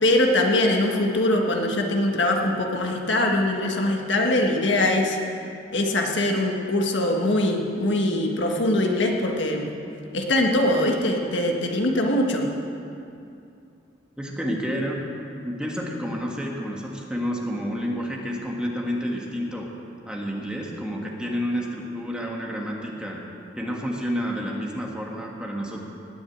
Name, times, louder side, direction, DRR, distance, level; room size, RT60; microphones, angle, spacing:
voice 1, 0.0-5.2 5.7-9.7 10.1-12.5, left 1 dB, 75° left, 1 dB, 1.6 m, -22 dB
voice 2, 14.2-15.0 15.4-19.7 20.0-23.2 23.6-25.8, equal, 5° right, -1 dB, 1.6 m, -29 dB
19.0 x 6.4 x 8.6 m, 2.6 s
head